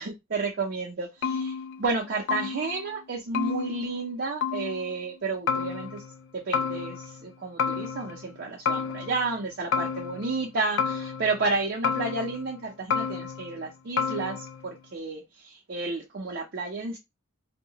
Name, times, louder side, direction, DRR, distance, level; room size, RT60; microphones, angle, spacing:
voice 1, 0.0-6.0 6.3-17.0, right 3 dB, 50° right, 0.5 m, -31 dB
sound 1, 1.2-2.0 2.3-2.9 3.3-4.2 4.4-5.0 5.5-6.2 6.5-7.3 7.6-8.4 8.7-9.4 9.7-10.5 10.8-11.5 11.8-12.6 12.9-13.6 14.0-14.7, left 6 dB, 60° left, 0.3 m, -31 dB
2.7 x 2.2 x 2.7 m
head